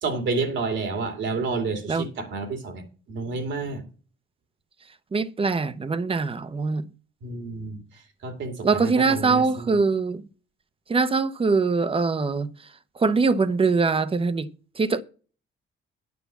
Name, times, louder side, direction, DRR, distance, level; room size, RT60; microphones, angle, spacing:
voice 1, 0.0-2.8 3.1-3.8 7.2-7.8 8.2-9.8, right 3 dB, 70° right, 2.6 m, -29 dB
voice 2, 5.1-6.8 8.6-10.2 10.9-12.5 13.0-14.5 14.8-15.0, right 4 dB, 30° right, 0.9 m, -22 dB
9.5 x 5.6 x 7.1 m
cardioid pair, 90°, 20 cm